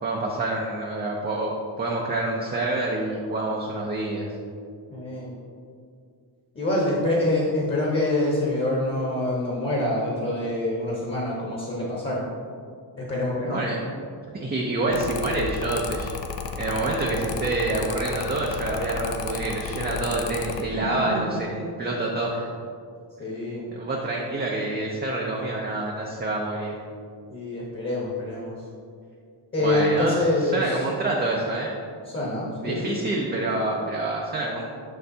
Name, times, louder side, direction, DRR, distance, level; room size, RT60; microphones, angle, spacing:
voice 1, 0.0-1.5 1.8-4.2 13.4-13.8 14.4-16.1 16.6-21.5 21.8-22.5 23.7-26.8 29.6-31.7 32.6-34.7, right 2 dB, 20° right, -2 dB, 0.5 m, -27 dB
voice 2, 4.9-5.3 6.5-12.2 13.0-13.6 20.7-21.6 23.2-23.6 27.3-28.5 29.5-30.6 32.1-32.8, left 1 dB, 25° left, -5 dB, 1.1 m, -26 dB
Mechanical fan, 14.9-20.6, left 6 dB, 70° left, 0.6 m, -33 dB
6.6 x 6.5 x 2.7 m, 2.2 s
wide cardioid pair, 165°, 45 cm